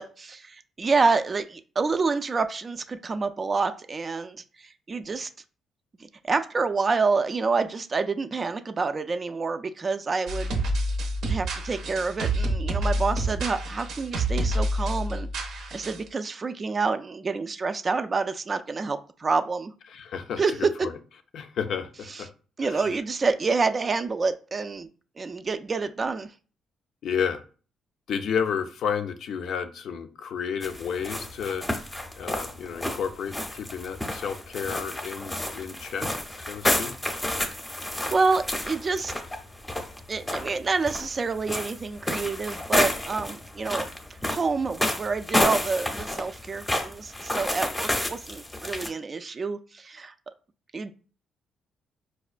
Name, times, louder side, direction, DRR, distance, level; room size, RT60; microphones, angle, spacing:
voice 1, 0.0-5.3 6.0-10.5 11.3-19.7 20.4-20.7 22.1-22.2 22.6-24.9 25.2-26.3 38.1-39.1 40.1-43.9 44.2-50.1 50.7-50.9, right 4 dB, 35° right, 9 dB, 0.3 m, -28 dB
sound 1, 10.3-16.1, right 1 dB, 75° right, 0.6 m, -28 dB
voice 2, 19.9-20.9 21.3-22.3 22.6-22.9 27.0-27.4 28.1-31.7 32.2-36.1 36.4-36.9, left 7 dB, 70° left, 8 dB, 0.4 m, -31 dB
sound 2, 30.6-48.9, left 1 dB, 15° left, 0.6 m, -30 dB
4.8 x 2.2 x 2.4 m, 0.38 s
cardioid pair, 90°, 0 cm